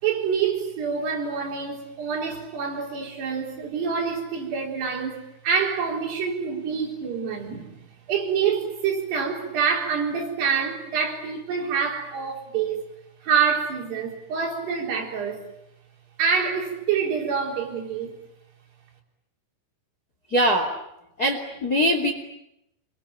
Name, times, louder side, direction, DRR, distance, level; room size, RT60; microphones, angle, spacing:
voice 1, 0.0-7.7 8.1-12.8 13.2-15.4 16.2-18.2, right 6 dB, 55° right, 6.0 m, -26 dB
voice 2, 20.3-20.7 21.2-22.1, equal, 25° left, 2.4 m, -22 dB
28.0 x 24.0 x 8.8 m
omnidirectional pair, 5.7 m